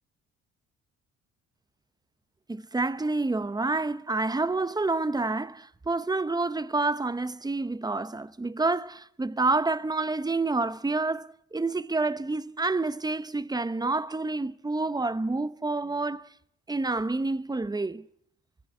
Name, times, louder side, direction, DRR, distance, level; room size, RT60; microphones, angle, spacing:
voice 1, 2.5-16.2 16.7-18.0, right 3 dB, 15° right, 0.8 m, -28 dB
23.5 x 16.0 x 8.6 m
cardioid pair, 90°, 30 cm